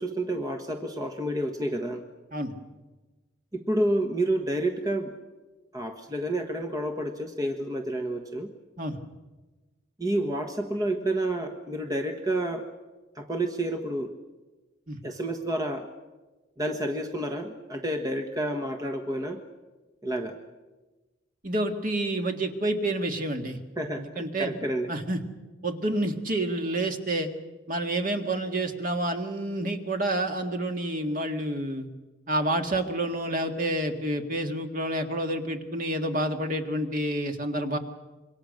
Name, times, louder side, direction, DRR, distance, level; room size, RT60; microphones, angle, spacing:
voice 1, 0.0-2.0 3.5-5.1 5.7-8.5 10.0-12.7 13.1-14.1 15.0-15.9 16.6-19.4 20.0-20.4 23.8-24.9, right 1 dB, 20° right, 4 dB, 1.4 m, -29 dB
voice 2, 21.4-23.6 24.0-24.5 24.9-25.2 25.6-27.3 27.7-31.9 32.3-37.8, right 1 dB, 45° right, 5 dB, 2.0 m, -29 dB
27.0 x 23.5 x 6.6 m, 1.2 s
head